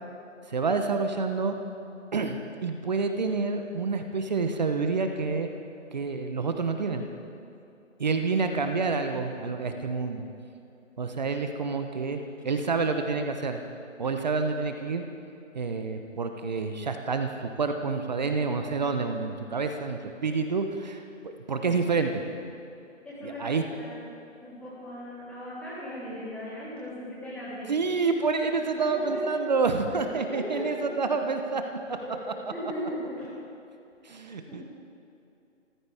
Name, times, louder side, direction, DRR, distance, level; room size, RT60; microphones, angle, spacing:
voice 1, 0.5-1.6 2.1-5.5 5.9-7.1 8.0-10.2 11.0-12.2 12.4-13.6 14.0-15.0 15.5-22.2 23.2-23.6 27.7-31.8 34.0-34.6, right 4 dB, 35° right, 6 dB, 1.0 m, -28 dB
voice 2, 23.0-24.1 24.4-27.7 28.7-29.4 29.9-30.8 31.9-33.3 34.0-34.1 34.5-34.6, equal, 5° left, -11 dB, 3.4 m, -38 dB
26.5 x 14.5 x 3.5 m, 2.7 s
figure-of-eight pair, 155°, 38 cm